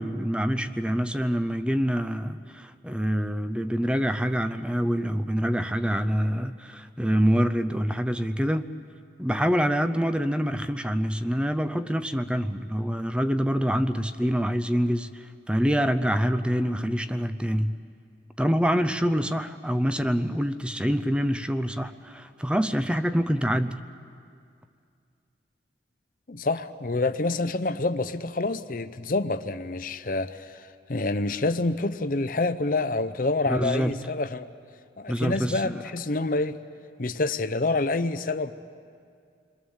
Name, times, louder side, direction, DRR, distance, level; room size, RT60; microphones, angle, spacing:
voice 1, 0.0-8.7 9.2-17.8 18.4-23.8 33.5-34.0 35.1-35.8, equal, 5° right, 10 dB, 0.6 m, -26 dB
voice 2, 26.3-34.5 35.0-36.6 37.0-38.5, left 2 dB, 50° left, 11 dB, 0.7 m, -27 dB
29.0 x 22.0 x 7.2 m, 2.3 s
head